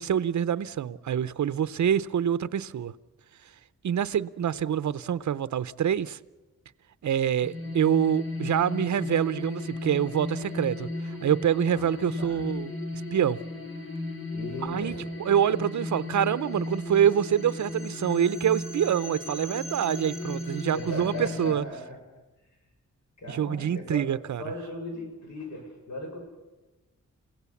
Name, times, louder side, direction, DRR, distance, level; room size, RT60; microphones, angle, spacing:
voice 1, 0.0-2.9 3.8-6.2 7.0-12.7 13.1-13.4 14.6-14.9 15.2-21.6 23.3-24.4, right 9 dB, 75° right, 0.7 m, -26 dB
sound 1, 7.4-21.5, left 2 dB, 45° left, 2.6 m, -35 dB
voice 2, 14.3-15.0 20.7-22.0 23.2-24.0 24.4-26.2, left 1 dB, 70° left, 6.6 m, -37 dB
30.0 x 16.5 x 7.1 m
wide cardioid pair, 170°, 29 cm